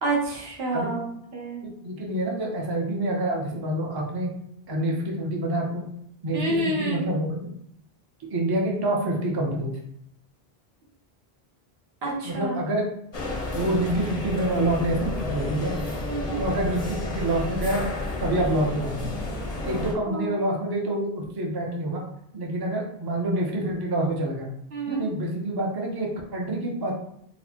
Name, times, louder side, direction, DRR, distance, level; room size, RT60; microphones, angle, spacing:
voice 1, 0.0-1.6 6.3-7.0 12.0-12.6 16.1-16.4 20.1-20.4 24.7-25.1, right 2 dB, 80° right, -3 dB, 1.2 m, -28 dB
voice 2, 1.6-4.3 4.7-5.9 6.2-7.5 8.3-9.8 12.2-12.8 13.5-15.8 16.4-17.9 18.2-19.1 19.6-22.0 22.3-24.5 24.9-26.9, right 1 dB, 30° right, 0 dB, 0.5 m, -27 dB
sound 1, 13.1-19.9, left 2 dB, 45° left, 0.6 m, -31 dB
4.0 x 2.1 x 2.9 m, 0.71 s
omnidirectional pair, 1.0 m